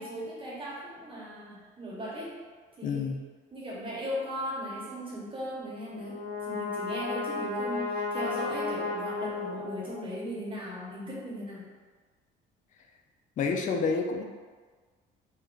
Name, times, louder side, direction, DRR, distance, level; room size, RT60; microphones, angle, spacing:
voice 1, 0.0-2.4 2.8-3.1 3.5-11.7, equal, 25° right, -6 dB, 1.1 m, -38 dB
voice 2, 2.8-3.2 13.4-14.2, left 4 dB, 40° left, 2 dB, 0.4 m, -28 dB
Brass instrument, 5.8-10.2, left 4 dB, 25° left, 1.3 m, -33 dB
3.7 x 2.2 x 2.5 m, 1.5 s
cardioid pair, 85°, 20 cm